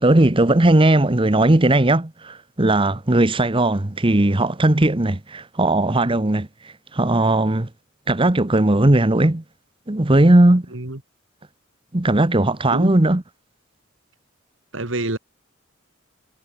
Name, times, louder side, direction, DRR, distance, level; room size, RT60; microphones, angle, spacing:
voice 1, 0.0-7.7 8.1-9.4 9.9-10.6 11.9-13.2, right 1 dB, 25° right, 1.1 m, -17 dB
voice 2, 14.7-15.2, right 2 dB, 70° right, 2.6 m, -27 dB
head